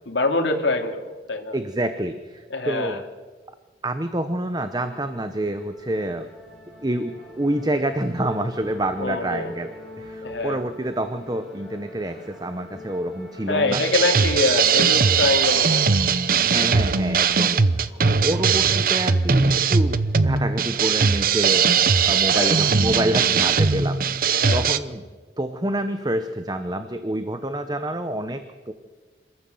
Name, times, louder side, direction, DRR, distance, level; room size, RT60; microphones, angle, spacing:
voice 1, 0.1-1.6 2.5-3.0 9.0-9.5 10.2-10.6 13.5-16.0 22.3-22.6 24.3-24.7, left 3 dB, 80° left, 4 dB, 2.7 m, -24 dB
voice 2, 1.5-3.0 3.8-6.3 6.8-13.8 15.0-15.1 16.4-24.2 24.5-25.0 25.4-28.7, right 1 dB, 20° right, 9 dB, 0.9 m, -27 dB
sound 1, 5.1-23.8, left 1 dB, ahead, 5.0 m, -45 dB
sound 2, 13.7-24.8, right 5 dB, 50° right, 0.8 m, -20 dB
27.0 x 14.0 x 7.8 m, 1.4 s
head